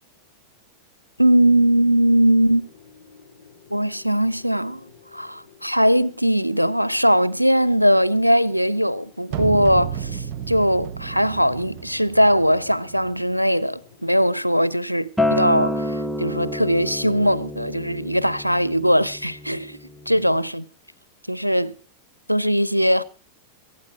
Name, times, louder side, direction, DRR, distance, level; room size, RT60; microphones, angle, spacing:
voice 1, 1.2-2.7 3.7-19.8 20.1-20.6 21.3-21.7 22.3-23.0, equal, 90° right, 0.6 m, -20 dB
sound 1, 1.9-14.8, left 5 dB, 85° left, 5.4 m, -51 dB
sound 2, 9.3-13.3, right 9 dB, 40° right, 1.6 m, -32 dB
Acoustic guitar, 15.2-20.4, left 1 dB, ahead, 0.8 m, -28 dB
23.0 x 8.8 x 4.5 m
figure-of-eight pair, 90°, 0 cm